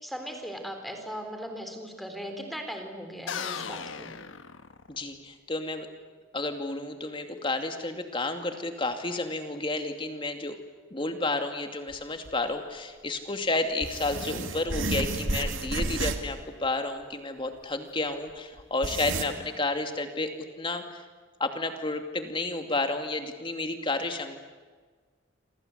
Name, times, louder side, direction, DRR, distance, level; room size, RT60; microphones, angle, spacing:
voice 1, 0.0-4.1 19.3-19.4, equal, ahead, 5 dB, 3.8 m, -38 dB
sound 1, 3.3-5.2, left 7 dB, 70° left, 1.2 m, -37 dB
voice 2, 4.9-5.9 6.3-10.6 10.9-20.3 20.6-21.0 21.4-24.4, left 2 dB, 25° left, 6 dB, 2.5 m, -31 dB
sound 2, 11.9-12.0 12.3-12.4 13.8-16.4 16.6-16.7 18.0-18.1 18.6-19.2, right 2 dB, 75° right, 2.4 m, -31 dB
29.0 x 25.5 x 8.1 m, 1.5 s
head